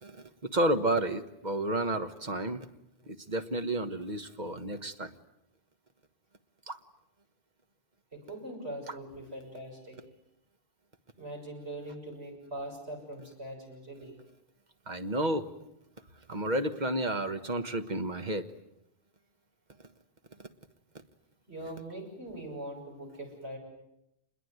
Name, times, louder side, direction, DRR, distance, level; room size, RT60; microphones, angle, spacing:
voice 1, 0.0-2.7 3.0-5.1 6.7-6.8 8.9-9.0 14.9-15.5 16.3-18.5 20.4-20.5, right 1 dB, 45° right, 8 dB, 1.5 m, -31 dB
voice 2, 8.1-10.0 11.2-14.1 21.5-23.6, right 1 dB, 80° right, 1 dB, 7.5 m, -42 dB
26.5 x 22.0 x 9.5 m, 0.84 s
omnidirectional pair, 1.1 m